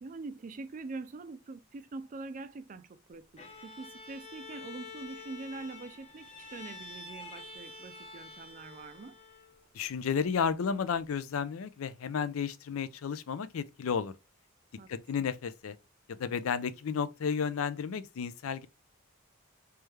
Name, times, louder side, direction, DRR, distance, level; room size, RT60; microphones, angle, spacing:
voice 1, 0.0-9.2 14.8-14.9, right 3 dB, 35° right, 0.4 m, -44 dB
Bowed string instrument, 3.4-9.7, left 3 dB, 30° left, 0.9 m, -48 dB
voice 2, 9.7-14.1 14.9-15.8 16.2-18.7, left 6 dB, 75° left, 0.4 m, -32 dB
3.3 x 3.2 x 3.2 m
head